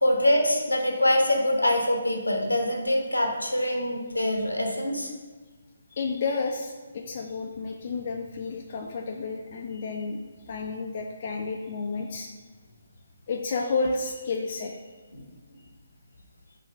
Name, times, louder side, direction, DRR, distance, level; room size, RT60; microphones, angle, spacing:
voice 1, 0.0-5.1 15.1-15.2, left 1 dB, 80° left, 2 dB, 0.8 m, -24 dB
voice 2, 5.9-12.3 13.3-14.8, left 4 dB, 40° left, 1 dB, 0.4 m, -31 dB
5.0 x 2.5 x 3.9 m, 1.3 s
figure-of-eight pair, 140°, 0 cm